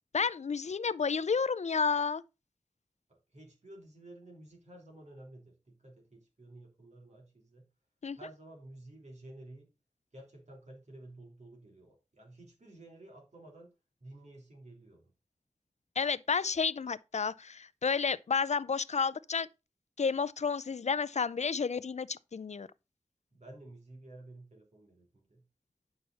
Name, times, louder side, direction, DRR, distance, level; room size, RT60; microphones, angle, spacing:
voice 1, 0.1-2.2 8.0-8.2 16.0-19.5 20.0-22.7, left 5 dB, 70° left, 0.5 m, -31 dB
voice 2, 3.1-7.7 8.2-9.7 10.1-13.7 14.0-15.1 23.3-25.5, right 1 dB, 70° right, 3.4 m, -52 dB
9.5 x 5.9 x 4.1 m
wide cardioid pair, 55°, 12 cm